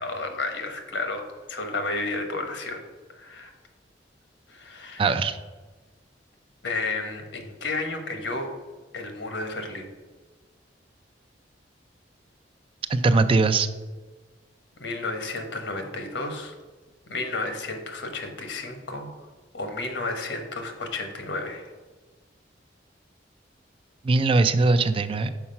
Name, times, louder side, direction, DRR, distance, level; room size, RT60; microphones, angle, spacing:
voice 1, 0.0-2.8 3.1-3.5 4.5-5.0 6.6-8.5 8.9-9.9 14.8-16.5 17.1-19.1 19.5-21.7, left 3 dB, 75° left, 6 dB, 1.1 m, -32 dB
voice 2, 5.0-5.4 12.9-13.7 24.0-25.3, right 3 dB, 30° right, 11 dB, 0.3 m, -21 dB
5.8 x 4.6 x 5.6 m, 1.3 s
head